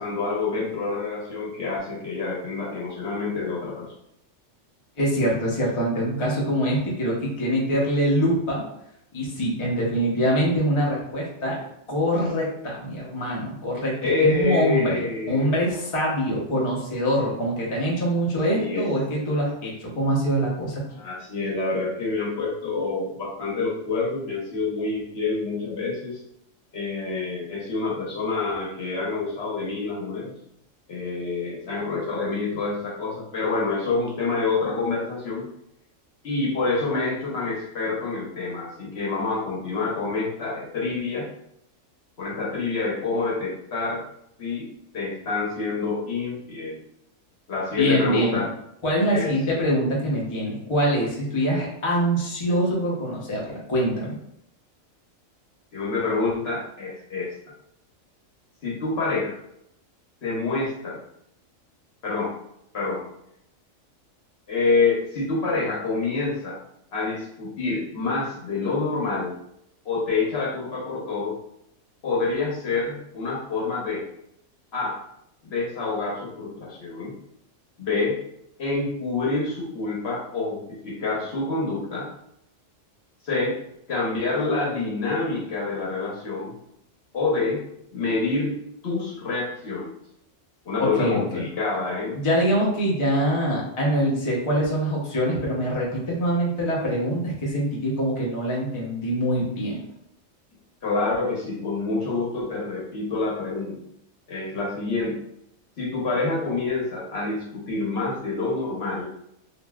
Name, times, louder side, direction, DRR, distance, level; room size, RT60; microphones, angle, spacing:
voice 1, 0.0-3.9 14.0-15.6 18.5-18.8 21.0-26.2 26.7-30.3 30.9-35.5 36.2-41.3 42.2-44.0 44.4-44.7 44.9-46.8 47.5-48.5 49.1-49.3 55.7-57.3 58.6-59.4 60.2-61.0 62.0-62.3 62.7-63.0 64.5-66.6 66.9-69.3 69.8-71.4 72.0-74.0 74.7-75.0 75.4-77.1 77.8-78.2 78.6-82.1 83.2-83.6 83.9-86.5 87.1-87.6 87.9-88.5 88.8-89.9 90.6-92.2 100.8-103.8 104.3-105.2 105.8-109.0, left 3 dB, 55° left, -4 dB, 1.0 m, -27 dB
voice 2, 5.0-8.6 9.1-11.6 11.9-20.8 47.8-48.4 48.8-54.2 90.8-91.4 92.1-99.8, equal, 35° left, -4 dB, 0.6 m, -24 dB
3.1 x 2.5 x 2.2 m, 0.77 s
omnidirectional pair, 1.4 m